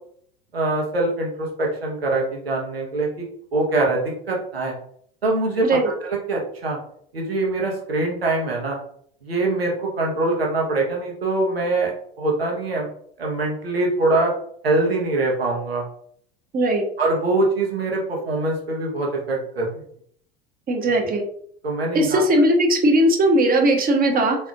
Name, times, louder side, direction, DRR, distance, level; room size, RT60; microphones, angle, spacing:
voice 1, 0.5-3.2 3.5-4.7 5.2-5.8 6.1-6.8 7.1-8.8 9.2-11.9 12.2-12.9 13.2-14.3 14.6-15.8 17.0-19.8 21.0-21.1 21.6-22.2, right 2 dB, 90° right, -1 dB, 1.2 m, -23 dB
voice 2, 16.5-16.8 20.7-21.2 21.9-24.4, right 1 dB, 30° right, 2 dB, 1.0 m, -18 dB
4.2 x 3.3 x 2.5 m, 0.63 s
hypercardioid pair, 80°, 29 cm